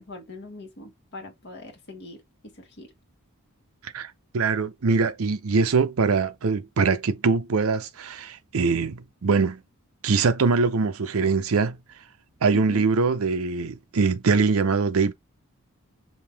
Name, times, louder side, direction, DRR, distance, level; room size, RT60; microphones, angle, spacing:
voice 1, 0.0-2.9 12.5-12.9, left 2 dB, 50° left, 1.4 m, -42 dB
voice 2, 3.8-9.6 10.0-11.8 12.4-15.1, right 4 dB, 70° right, 0.6 m, -23 dB
5.3 x 2.7 x 3.3 m
head